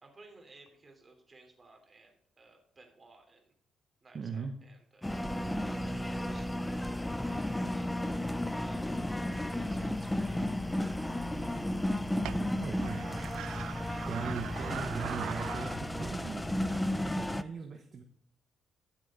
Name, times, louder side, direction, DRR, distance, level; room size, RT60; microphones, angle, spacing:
voice 1, 0.0-3.4 4.0-5.9 6.3-6.7 8.4-11.2 11.5-12.1, right 3 dB, 30° right, 2 dB, 3.4 m, -57 dB
voice 2, 4.1-4.6 12.6-13.2 14.1-18.0, right 5 dB, 45° right, 4 dB, 1.2 m, -40 dB
sound 1, 5.0-17.4, left 1 dB, 10° left, 0.5 m, -33 dB
sound 2, 10.8-17.0, right 11 dB, 80° right, 0.3 m, -43 dB
12.0 x 7.5 x 3.8 m, 0.66 s
cardioid pair, 90°, 0 cm